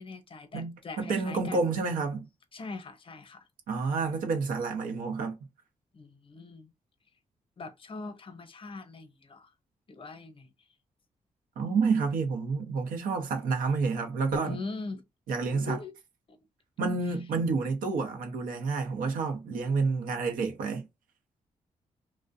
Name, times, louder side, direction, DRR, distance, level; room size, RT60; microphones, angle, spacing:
voice 1, 0.0-1.7 2.5-3.5 5.9-6.7 7.6-9.5 9.9-10.5 14.4-15.1 15.5-15.9 16.3-16.4, left 4 dB, 40° left, 0.7 m, -41 dB
voice 2, 0.5-2.3 3.7-5.4 11.6-14.6 15.3-15.8 16.8-20.9, right 4 dB, 90° right, 0.6 m, -29 dB
2.5 x 2.1 x 2.4 m
cardioid pair, 70°, 14 cm